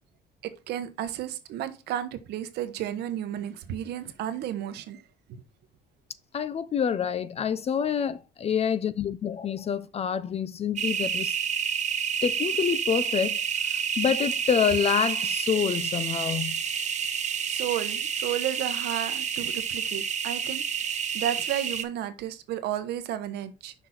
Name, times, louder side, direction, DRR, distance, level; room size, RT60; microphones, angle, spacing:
voice 1, 0.4-5.0 17.5-23.7, right 11 dB, 80° right, 1.0 m, -33 dB
voice 2, 6.3-11.4 12.2-13.4 13.6-16.6, left 8 dB, 35° left, 0.6 m, -27 dB
sound 1, 10.8-21.8, right 7 dB, 45° right, 1.0 m, -29 dB
6.2 x 5.2 x 4.1 m
cardioid pair, 110°, 17 cm